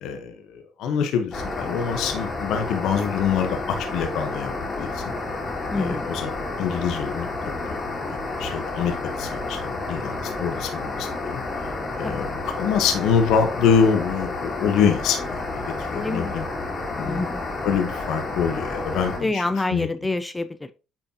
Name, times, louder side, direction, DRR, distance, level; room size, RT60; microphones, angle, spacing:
voice 1, 0.0-5.0 5.7-6.3 6.6-7.6 8.1-11.4 11.9-16.5 16.9-17.3 17.6-19.9, left 7 dB, 75° left, 5 dB, 1.1 m, -25 dB
sound 1, 1.3-19.2, left 2 dB, 30° left, 2.5 m, -30 dB
voice 2, 5.7-6.1 12.0-12.3 15.9-16.3 17.0-17.4 19.2-20.7, left 2 dB, 15° left, 13 dB, 0.6 m, -27 dB
8.7 x 4.2 x 2.9 m, 0.31 s
cardioid pair, 90°, 0 cm